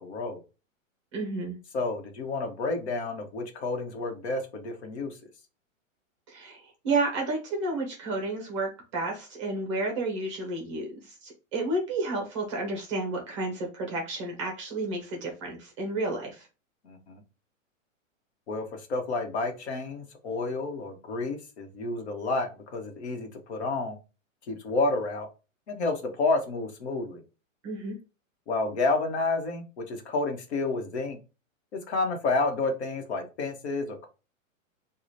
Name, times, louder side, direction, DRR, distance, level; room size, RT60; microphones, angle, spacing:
voice 1, 0.0-0.4 1.7-5.2 16.8-17.2 18.5-24.0 24.5-25.3 25.7-27.2 28.5-31.2 31.9-34.1, left 3 dB, 55° left, 4 dB, 1.1 m, -30 dB
voice 2, 1.1-1.6 6.3-16.5 27.6-28.0, right 2 dB, 25° right, 1 dB, 0.7 m, -31 dB
4.8 x 2.3 x 2.6 m, 0.30 s
hypercardioid pair, 175°, 40 cm